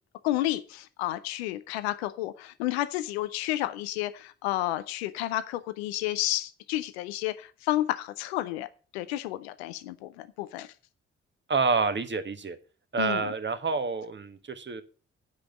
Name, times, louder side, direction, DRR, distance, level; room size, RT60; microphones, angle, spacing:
voice 1, 0.2-8.7 8.9-10.7 13.0-13.3, left 15 dB, 85° left, 13 dB, 0.6 m, -31 dB
voice 2, 11.5-12.6 12.9-14.8, right 4 dB, 35° right, 10 dB, 1.5 m, -28 dB
10.0 x 5.1 x 8.0 m, 0.38 s
hypercardioid pair, 40°, 31 cm